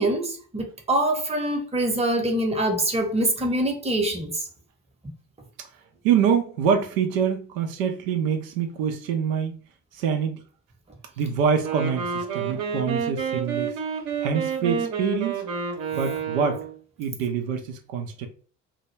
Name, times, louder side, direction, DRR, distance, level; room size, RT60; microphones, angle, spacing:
voice 1, 0.0-4.4, right 1 dB, 15° right, 0.8 m, -24 dB
voice 2, 6.0-9.5 9.9-10.4 11.2-13.8 14.2-15.3 15.9-16.6 17.0-18.3, right 7 dB, 75° right, 0.5 m, -25 dB
Wind instrument woodwind instrument, 11.5-16.8, right 7 dB, 55° right, 0.8 m, -29 dB
2.2 x 2.0 x 3.1 m
hypercardioid pair, 45°, 40 cm